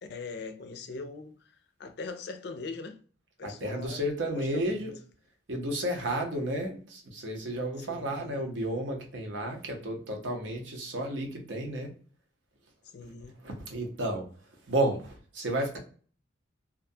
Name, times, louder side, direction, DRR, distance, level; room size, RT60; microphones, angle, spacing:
voice 1, 0.0-3.0 3.4-4.0 4.3-4.9 7.9-8.5 12.8-13.4, left 4 dB, 60° left, 0.4 m, -41 dB
voice 2, 3.4-5.0 5.5-11.9 13.4-14.3 14.7-15.8, right 1 dB, 75° right, 0.8 m, -32 dB
2.4 x 2.2 x 2.5 m
head